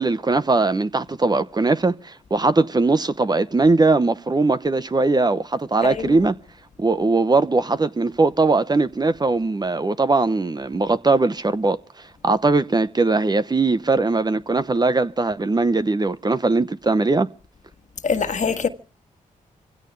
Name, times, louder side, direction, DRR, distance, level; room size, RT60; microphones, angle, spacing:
voice 1, 0.0-6.3 6.8-11.8 12.2-17.3, right 3 dB, 30° right, 0.9 m, -20 dB
voice 2, 5.8-6.2 18.0-18.7, left 5 dB, 55° left, 1.6 m, -23 dB
25.5 x 16.5 x 3.3 m
cardioid pair, 65°, 15 cm